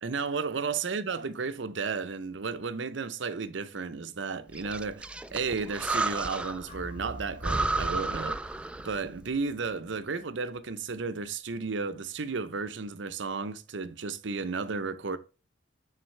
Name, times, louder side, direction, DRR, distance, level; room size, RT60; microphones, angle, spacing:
voice 1, 0.0-8.5 8.8-15.2, right 4 dB, 70° right, 0.7 m, -33 dB
Breathing, 4.5-6.7 7.0-7.1 7.4-9.1, right 2 dB, 5° right, 0.3 m, -32 dB
sound 1, 6.7-10.9, right 1 dB, 35° left, 1.4 m, -48 dB
9.0 x 4.0 x 3.2 m
head